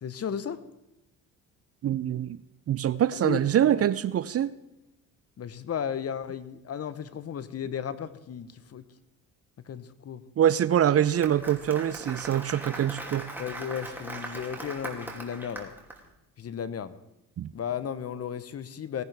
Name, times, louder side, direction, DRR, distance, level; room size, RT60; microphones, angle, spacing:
voice 1, 0.0-0.6 3.1-3.4 3.7-3.9 5.4-8.8 9.7-10.2 13.4-15.7 16.4-16.9 17.5-19.0, left 8 dB, 40° left, 14 dB, 0.9 m, -34 dB
voice 2, 1.8-2.4 2.7-4.5 10.4-13.3 17.4-17.5, right 10 dB, 40° right, 17 dB, 0.5 m, -24 dB
Applause, 10.8-16.0, right 2 dB, 5° right, 2.6 m, -40 dB
18.0 x 10.5 x 3.4 m, 0.94 s
supercardioid pair, 70°, 36 cm